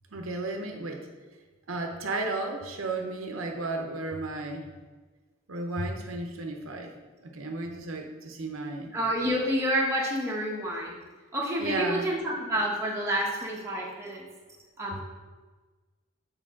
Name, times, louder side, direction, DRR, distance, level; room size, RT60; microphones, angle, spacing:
voice 1, 0.1-1.1 1.7-4.7 5.5-6.9 7.2-8.9 11.6-12.0, right 2 dB, 80° right, 3 dB, 0.8 m, -33 dB
voice 2, 8.9-11.0 11.3-14.2 14.8-15.0, equal, 15° right, -4 dB, 1.1 m, -29 dB
7.5 x 4.8 x 3.7 m, 1.3 s
head